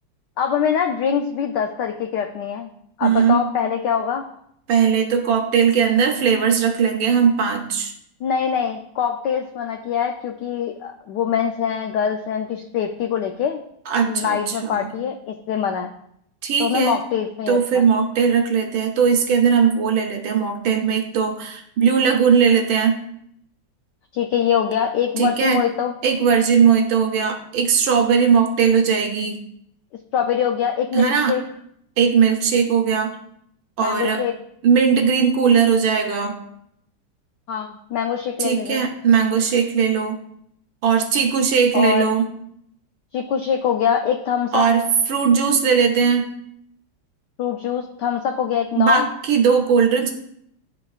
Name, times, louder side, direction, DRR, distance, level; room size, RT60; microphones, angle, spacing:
voice 1, 0.4-2.7 3.0-4.2 8.2-13.6 14.1-15.9 16.6-17.8 24.1-25.9 30.1-31.4 33.8-34.3 37.5-38.9 41.7-42.1 43.1-44.7 47.4-49.1, left 8 dB, 85° left, 5 dB, 0.9 m, -23 dB
voice 2, 3.0-3.4 4.7-7.9 13.9-14.9 16.4-17.0 17.5-23.0 25.2-25.6 26.0-29.4 30.9-31.4 32.0-33.1 33.8-34.2 34.6-36.4 38.4-40.2 40.8-42.3 44.5-46.2 48.7-50.1, right 6 dB, 70° right, 4 dB, 1.5 m, -18 dB
12.0 x 4.3 x 2.3 m, 0.72 s
omnidirectional pair, 2.4 m